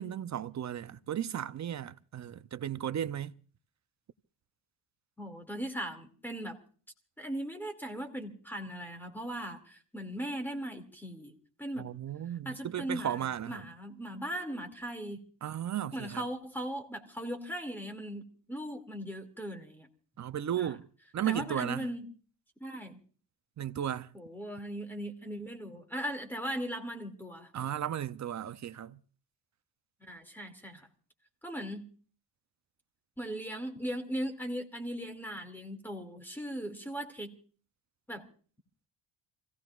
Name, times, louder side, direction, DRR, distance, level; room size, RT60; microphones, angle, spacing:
voice 1, 0.0-3.3 11.8-13.6 15.4-16.2 20.2-20.8 21.1-21.8 23.6-24.1 27.5-29.0, right 10 dB, 40° right, 0.6 m, -35 dB
voice 2, 5.2-6.6 7.2-11.3 11.6-11.9 12.5-15.2 15.9-19.9 20.6-20.7 21.3-22.1 22.6-23.0 24.1-27.5 30.0-30.9 31.4-31.9 33.2-37.3 38.1-38.2, equal, 5° left, 2.4 m, -38 dB
28.0 x 16.5 x 2.4 m
cardioid pair, 130°, 45 cm